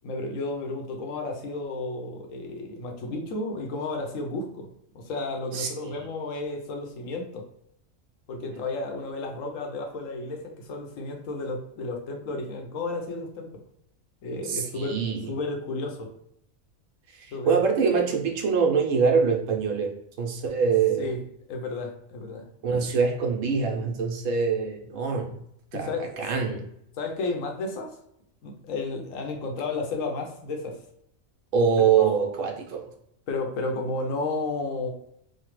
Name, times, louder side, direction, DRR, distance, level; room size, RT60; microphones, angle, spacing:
voice 1, 0.0-4.7 4.9-7.5 8.3-13.6 14.2-15.0 15.3-16.1 17.3-17.6 21.0-21.2 21.5-22.9 25.7-26.2 27.0-28.0 28.4-30.8 32.0-32.1 33.3-34.9, left 3 dB, 75° left, 3 dB, 1.0 m, -32 dB
voice 2, 5.5-6.1 14.5-15.3 17.1-19.9 20.2-21.1 22.6-25.4 25.7-26.6 31.5-32.9, right 6 dB, 75° right, 2 dB, 1.0 m, -24 dB
3.2 x 2.2 x 2.9 m, 0.74 s
omnidirectional pair, 1.4 m